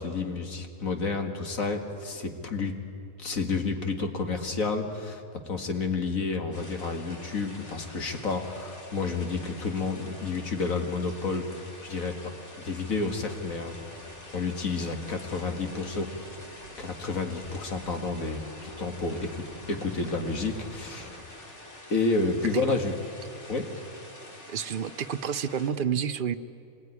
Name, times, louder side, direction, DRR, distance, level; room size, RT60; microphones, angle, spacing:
voice 1, 0.0-2.8 3.2-11.5 11.8-12.2 12.6-14.0 14.3-16.1 16.8-21.1 21.9-22.9 23.5-23.7, left 3 dB, 70° left, 4 dB, 2.3 m, -30 dB
sound 1, 6.5-25.7, left 1 dB, 50° left, 3.3 m, -47 dB
Car passing by, 13.0-21.1, equal, 25° left, 5.9 m, -51 dB
voice 2, 24.5-26.4, right 8 dB, 50° right, 12 dB, 0.7 m, -29 dB
25.5 x 20.5 x 9.9 m, 2.5 s
omnidirectional pair, 1.5 m